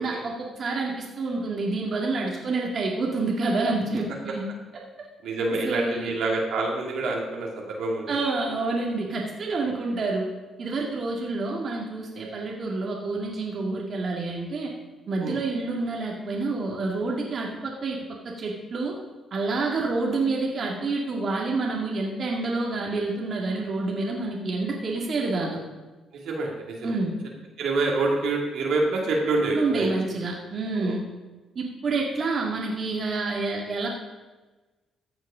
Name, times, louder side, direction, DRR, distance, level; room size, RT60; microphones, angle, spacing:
voice 1, 0.0-4.5 5.5-6.1 8.1-10.3 10.6-14.7 15.1-19.0 19.3-25.6 26.8-27.1 29.5-31.0 31.6-33.9, right 3 dB, 50° right, -1 dB, 2.0 m, -28 dB
voice 2, 5.2-8.2 9.7-9.8 15.2-15.4 26.2-27.0 27.6-29.9 30.8-30.9, right 2 dB, 75° right, -1 dB, 2.4 m, -27 dB
14.5 x 6.4 x 5.0 m, 1.2 s
cardioid pair, 90°, 0 cm